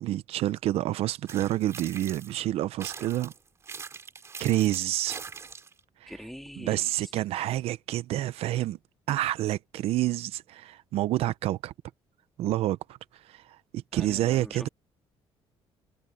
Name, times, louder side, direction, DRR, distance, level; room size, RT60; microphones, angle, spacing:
voice 1, 0.0-3.3 4.4-5.2 6.0-6.1 6.6-8.8 9.1-11.7 12.4-14.7, right 14 dB, 70° right, 0.6 m, -28 dB
sound 1, 1.3-2.4 2.8-5.8, right 5 dB, 25° right, 3.9 m, -42 dB
voice 2, 6.1-6.9 13.9-14.7, equal, ahead, 2.3 m, -43 dB
cardioid pair, 175°, 10 cm